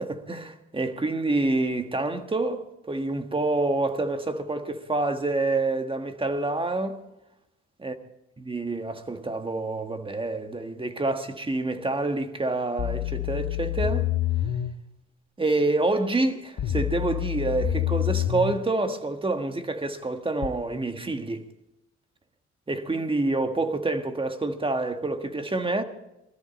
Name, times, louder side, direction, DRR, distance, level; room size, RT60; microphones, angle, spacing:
voice 1, 0.0-7.0 7.8-7.9 8.4-14.1 15.4-21.5 22.7-25.8, right 2 dB, 15° right, 1.6 m, -27 dB
sound 1, 12.8-14.7 16.6-18.6 20.4-20.5, left 12 dB, 55° left, 1.1 m, -27 dB
20.5 x 14.0 x 4.3 m
cardioid pair, 90°, 30 cm